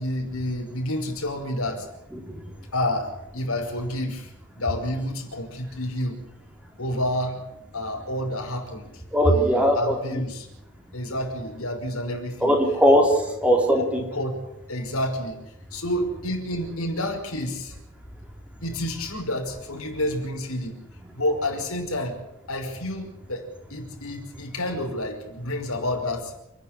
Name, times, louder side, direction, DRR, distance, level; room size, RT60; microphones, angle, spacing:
voice 1, 0.0-1.9 2.7-4.3 4.6-6.2 6.8-7.4 7.7-8.8 9.2-10.5 10.9-12.6 13.2-13.3 14.0-14.3 14.7-15.4 15.7-17.7 18.6-20.7 21.1-22.2 22.5-26.3, left 1 dB, 75° left, 2 dB, 5.6 m, -29 dB
voice 2, 9.1-10.2 12.4-14.0, equal, 5° right, 1 dB, 3.9 m, -20 dB
29.5 x 10.5 x 10.0 m, 0.84 s
head